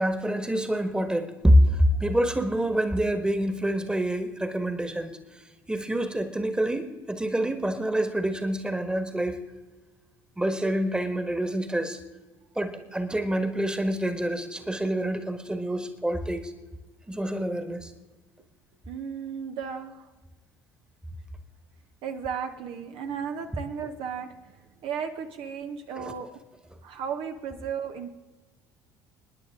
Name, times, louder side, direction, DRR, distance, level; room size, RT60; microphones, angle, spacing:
voice 1, 0.0-5.4 5.7-9.4 10.4-12.0 12.5-16.5 17.1-17.9 26.0-26.1, equal, 10° right, 9 dB, 1.5 m, -26 dB
voice 2, 18.9-20.1 22.0-26.4 26.8-28.1, right 7 dB, 55° right, 6 dB, 0.9 m, -35 dB
29.5 x 10.0 x 3.7 m, 1.2 s
figure-of-eight pair, 60°, 11 cm